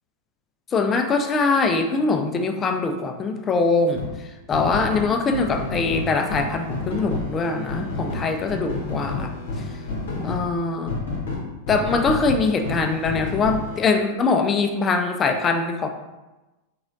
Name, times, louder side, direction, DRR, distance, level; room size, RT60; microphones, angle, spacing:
voice 1, 0.7-4.0 4.5-9.3 10.2-10.9 11.7-15.9, left 4 dB, 25° left, 5 dB, 0.4 m, -22 dB
sound 1, 3.9-4.1 4.5-10.5 10.9-13.9, left 2 dB, 60° left, 0.8 m, -30 dB
3.8 x 3.0 x 2.5 m, 1.1 s
figure-of-eight pair, 90°, 0 cm